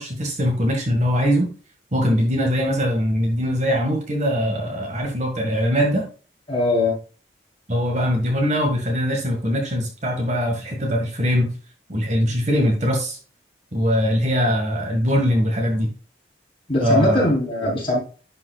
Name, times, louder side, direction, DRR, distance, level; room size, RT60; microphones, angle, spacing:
voice 1, 0.0-1.5 1.9-6.0 7.7-11.5 11.9-13.2 13.7-15.9 16.8-17.3, equal, 40° right, 2 dB, 1.7 m, -21 dB
voice 2, 6.5-7.0 16.7-18.0, left 1 dB, 30° left, -4 dB, 3.9 m, -20 dB
11.0 x 5.5 x 2.4 m, 0.37 s
head